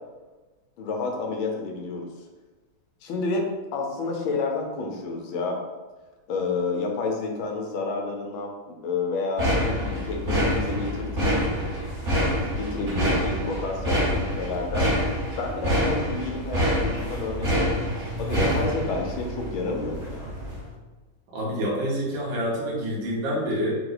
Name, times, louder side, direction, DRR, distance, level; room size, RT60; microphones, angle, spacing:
voice 1, 0.8-2.1 3.0-5.6 6.3-11.4 12.5-14.9 15.4-17.8 18.2-20.3, left 3 dB, 90° left, 1 dB, 1.6 m, -30 dB
sound 1, 9.4-20.7, equal, 45° right, 1.1 m, -26 dB
voice 2, 21.3-23.7, equal, 70° right, -5 dB, 1.7 m, -27 dB
4.1 x 2.9 x 3.9 m, 1.2 s
omnidirectional pair, 2.1 m